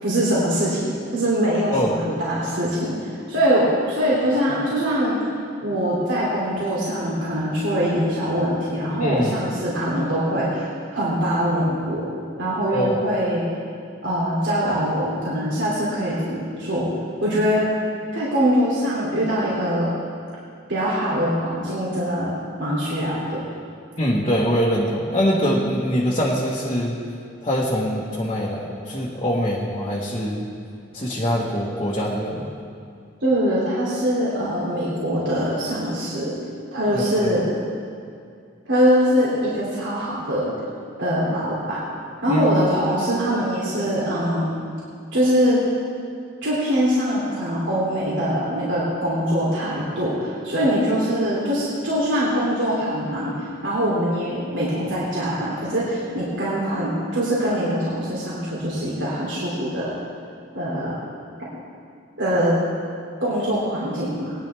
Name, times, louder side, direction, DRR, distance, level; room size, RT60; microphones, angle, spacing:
voice 1, 0.0-5.2 5.6-10.7 10.9-12.1 12.4-13.5 14.0-16.9 17.2-17.7 18.1-19.9 20.7-22.3 22.6-23.4 33.2-36.3 36.7-37.6 38.7-40.5 41.0-41.8 42.2-44.5 45.1-45.6 46.4-53.3 53.6-59.9 60.5-61.0 62.2-62.6 63.2-64.3, equal, 80° right, -7 dB, 3.0 m, -23 dB
voice 2, 9.0-9.4 12.7-12.9 24.0-27.0 27.4-30.5 30.9-32.5 36.9-37.3 42.3-42.8, equal, 30° left, -6 dB, 1.5 m, -23 dB
19.5 x 10.5 x 3.5 m, 2.3 s
head